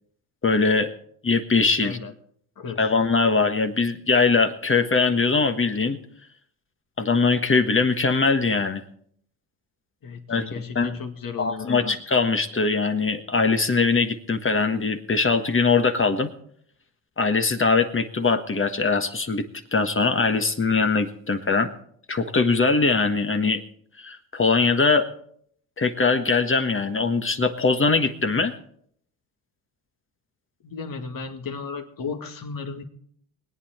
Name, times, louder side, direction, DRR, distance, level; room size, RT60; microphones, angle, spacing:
voice 1, 0.4-0.9 1.2-2.0 2.8-6.0 7.0-8.8 10.3-10.4 10.7-10.9 11.4-16.3 17.2-21.7 22.1-23.6 24.0-25.1 25.8-28.6, left 4 dB, 25° left, 7 dB, 1.5 m, -21 dB
voice 2, 1.8-2.1 2.6-2.9 10.0-12.0 30.6-32.8, left 5 dB, 50° left, 6 dB, 2.1 m, -34 dB
21.0 x 9.0 x 4.4 m, 0.64 s
supercardioid pair, 70°, 45 cm